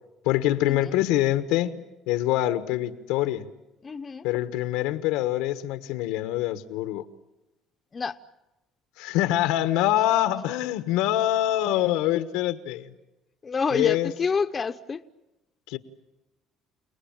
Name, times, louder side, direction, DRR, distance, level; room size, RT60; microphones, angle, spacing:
voice 1, 0.2-3.5 4.2-7.0 9.0-12.9 13.7-14.1 15.7-15.8, left 14 dB, 90° left, 1.3 m, -25 dB
voice 2, 3.8-4.3 7.9-8.2 13.4-15.0, left 5 dB, 25° left, 0.8 m, -28 dB
29.5 x 19.0 x 8.9 m
cardioid pair, 120°, 0 cm